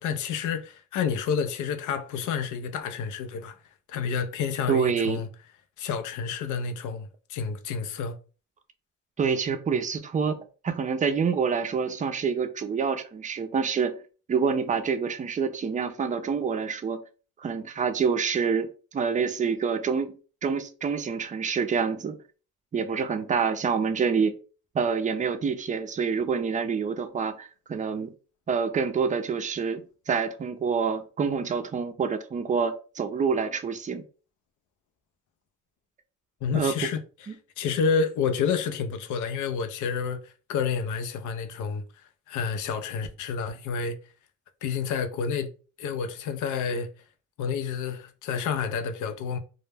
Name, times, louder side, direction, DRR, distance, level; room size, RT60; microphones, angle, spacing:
voice 1, 0.0-3.6 3.9-5.3 5.8-8.2 36.4-37.0 37.6-41.8 42.3-44.0 44.6-45.5 45.8-46.9 47.4-49.4, left 6 dB, 75° left, 0.5 m, -29 dB
voice 2, 4.7-5.2 9.2-10.4 10.6-13.9 14.3-17.0 17.4-20.1 20.4-22.2 22.7-24.3 24.7-28.1 28.5-34.0 36.5-36.8 37.3-37.4, right 6 dB, 25° right, 0.4 m, -27 dB
2.1 x 2.1 x 3.2 m
cardioid pair, 90°, 30 cm